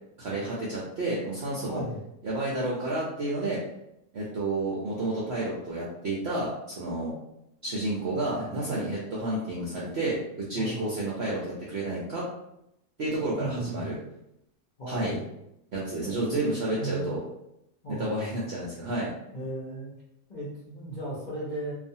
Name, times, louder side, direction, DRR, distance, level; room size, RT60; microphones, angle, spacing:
voice 1, 0.2-1.8 2.2-3.6 4.1-7.1 7.6-12.3 13.0-14.0 14.9-15.2 15.7-17.2 17.9-19.1, right 2 dB, 65° right, -5 dB, 0.6 m, -30 dB
voice 2, 1.7-2.0 10.6-10.8 13.3-13.9 14.8-15.3 16.0-16.2 16.7-17.1 17.8-18.2 19.3-19.9 20.3-21.7, right 1 dB, 50° left, -9 dB, 0.5 m, -35 dB
2.4 x 2.4 x 2.6 m, 0.81 s
omnidirectional pair, 1.7 m